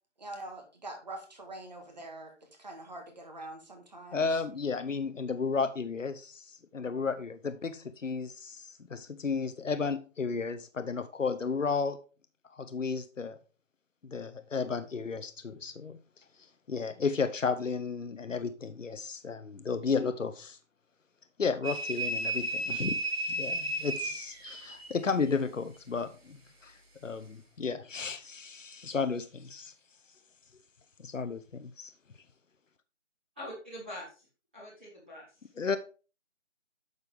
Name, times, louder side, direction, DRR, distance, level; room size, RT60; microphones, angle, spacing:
voice 1, 0.2-2.3 2.6-4.3, right 2 dB, 35° right, 1.8 m, -44 dB
voice 2, 4.1-12.0 12.5-13.4 14.0-16.2 16.7-20.6 21.4-23.0 23.3-29.7 31.0-31.9 35.6-35.8, left 5 dB, 90° left, 0.9 m, -33 dB
sound 1, 21.6-25.0, right 1 dB, 55° right, 2.1 m, -33 dB
voice 3, 33.3-34.2 34.5-35.2, left 1 dB, 10° right, 1.6 m, -43 dB
8.2 x 6.8 x 3.5 m
figure-of-eight pair, 170°, 37 cm